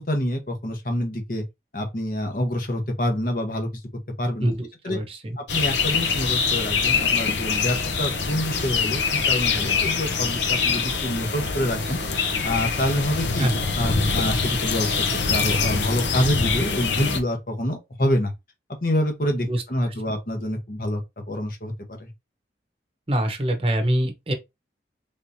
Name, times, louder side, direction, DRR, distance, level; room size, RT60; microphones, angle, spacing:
voice 1, 0.0-1.4 1.7-3.8 4.2-4.5 4.8-5.0 5.4-13.5 13.8-18.3 18.8-22.1, left 1 dB, 50° left, 1.1 m, -27 dB
voice 2, 4.4-5.4 13.4-13.7 19.4-19.9 23.1-24.3, right 1 dB, 30° right, 0.8 m, -25 dB
sound 1, 5.5-17.2, left 5 dB, 85° left, 0.8 m, -24 dB
3.6 x 3.2 x 2.7 m
head